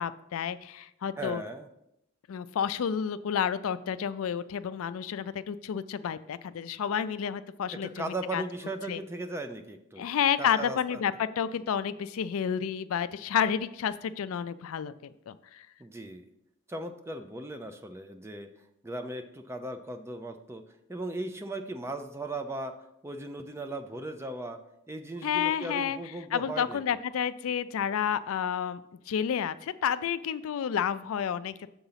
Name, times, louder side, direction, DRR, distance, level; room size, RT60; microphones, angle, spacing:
voice 1, 0.0-1.4 2.3-8.4 8.9-9.0 10.0-15.7 25.2-26.0 26.3-28.8 29.1-31.7, left 8 dB, 75° left, 14 dB, 0.3 m, -30 dB
voice 2, 1.2-1.7 7.7-10.1 10.4-11.0 15.8-16.3 16.7-18.5 18.8-20.6 20.9-22.7 23.0-24.6 24.9-26.9, right 2 dB, 10° right, 6 dB, 0.4 m, -37 dB
7.1 x 3.8 x 5.6 m, 0.81 s
head